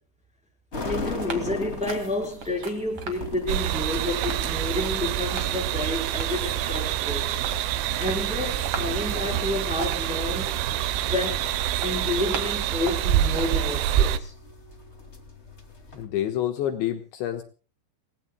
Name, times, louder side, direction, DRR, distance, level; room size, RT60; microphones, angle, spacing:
sound 1, 0.7-16.1, left 2 dB, 35° left, 1.0 m, -41 dB
voice 1, 0.8-7.2 8.0-10.6 11.1-11.6 11.8-14.3, left 2 dB, ahead, 0 dB, 3.8 m, -30 dB
sound 2, 1.2-13.5, right 5 dB, 45° right, 1.9 m, -40 dB
sound 3, 3.5-14.2, right 11 dB, 80° right, 3.4 m, -26 dB
voice 2, 15.9-17.4, left 11 dB, 75° left, 5 dB, 3.3 m, -28 dB
29.5 x 18.5 x 2.2 m, 0.37 s
omnidirectional pair, 5.7 m